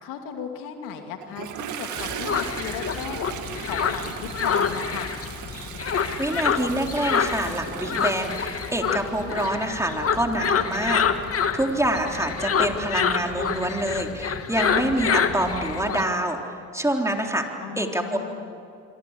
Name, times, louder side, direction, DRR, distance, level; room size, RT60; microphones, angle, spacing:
voice 1, 0.0-3.2 3.6-5.1 17.6-18.5, left 8 dB, 80° left, 4 dB, 2.7 m, -36 dB
Toilet flush, 1.2-11.8, right 8 dB, 65° right, 2.3 m, -38 dB
sound 1, 2.0-16.0, left 6 dB, 45° left, 1.8 m, -27 dB
voice 2, 6.2-17.5 17.8-18.0, right 1 dB, 10° right, 2 dB, 3.9 m, -26 dB
26.0 x 24.5 x 8.4 m, 2.5 s
supercardioid pair, 65°, 32 cm